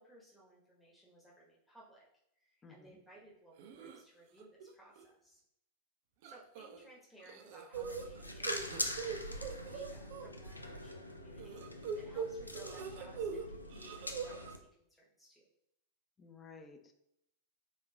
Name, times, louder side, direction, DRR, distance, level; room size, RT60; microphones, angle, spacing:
voice 1, 0.0-2.0 2.4-5.4 6.2-15.5, right 1 dB, ahead, -6 dB, 0.9 m, -60 dB
voice 2, 2.6-3.0 16.2-16.9, left 4 dB, 20° left, 5 dB, 0.5 m, -55 dB
sound 1, 3.6-4.0 4.4-4.7 5.0-5.1 6.2-6.9 7.2-10.3 11.4-13.4 13.7-14.5, right 6 dB, 50° right, 0.4 m, -42 dB
sound 2, 7.7-14.6, left 1 dB, 85° left, 0.3 m, -43 dB
3.7 x 3.2 x 2.2 m, 0.78 s
figure-of-eight pair, 90°, 0 cm